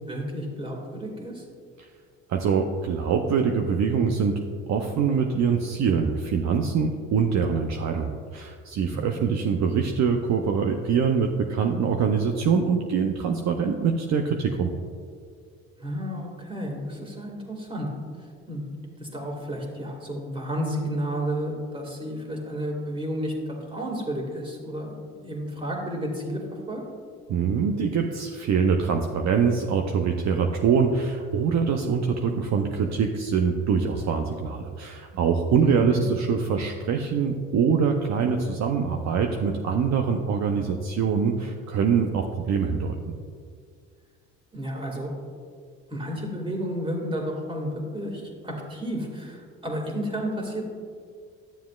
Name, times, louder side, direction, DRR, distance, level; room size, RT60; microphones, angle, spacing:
voice 1, 0.1-1.4 8.9-9.4 15.8-17.9 18.5-18.6 19.0-23.3 23.7-24.9 25.2-26.4 26.7-26.8 35.7-36.1 44.5-45.1 45.9-50.7, equal, 15° right, 0 dB, 2.0 m, -31 dB
voice 2, 2.3-4.4 4.7-14.7 27.3-43.1, right 6 dB, 50° right, 3 dB, 0.6 m, -24 dB
11.5 x 7.2 x 2.4 m, 2.1 s
supercardioid pair, 80°, 36 cm